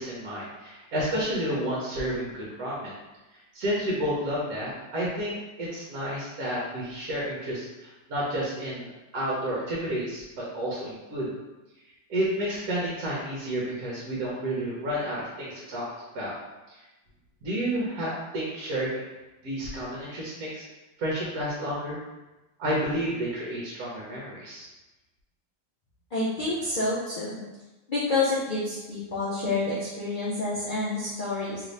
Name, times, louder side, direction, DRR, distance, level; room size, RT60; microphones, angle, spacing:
voice 1, 0.0-3.0 3.5-11.3 12.1-15.8 16.1-16.3 16.7-16.8 17.4-18.9 19.4-20.6 21.0-22.0 22.6-24.7, equal, 65° right, -6 dB, 1.2 m, -31 dB
voice 2, 26.1-27.4 27.9-31.6, left 2 dB, 85° left, -8 dB, 0.4 m, -28 dB
3.1 x 2.6 x 3.1 m, 1.1 s
omnidirectional pair, 1.8 m